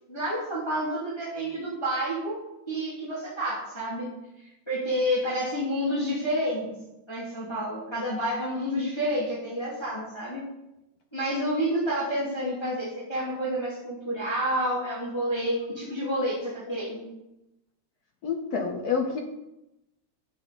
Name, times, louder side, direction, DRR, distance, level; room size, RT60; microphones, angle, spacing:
voice 1, 0.1-2.4 2.7-4.1 4.7-6.7 7.1-10.4 11.1-17.1, equal, 10° left, -8 dB, 2.6 m, -29 dB
voice 2, 18.2-19.2, left 5 dB, 60° left, 3 dB, 1.2 m, -28 dB
9.1 x 8.0 x 4.1 m, 0.90 s
omnidirectional pair, 2.3 m